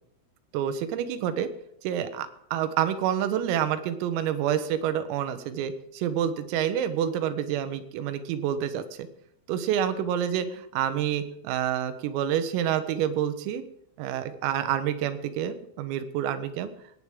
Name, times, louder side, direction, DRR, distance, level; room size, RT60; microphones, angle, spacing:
voice 1, 0.5-1.5 1.8-9.1 9.5-13.6 14.0-16.7, right 9 dB, 85° right, 11 dB, 3.9 m, -28 dB
18.0 x 18.0 x 3.7 m, 0.75 s
omnidirectional pair, 5.9 m